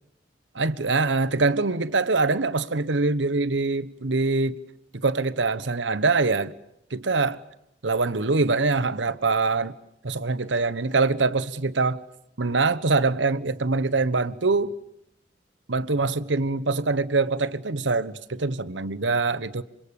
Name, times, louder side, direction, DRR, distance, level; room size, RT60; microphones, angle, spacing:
voice 1, 0.5-4.6 4.9-6.5 6.9-7.4 7.8-9.7 10.0-12.0 12.4-14.7 15.7-19.6, right 3 dB, 85° right, 1.1 m, -24 dB
27.5 x 25.5 x 7.1 m
head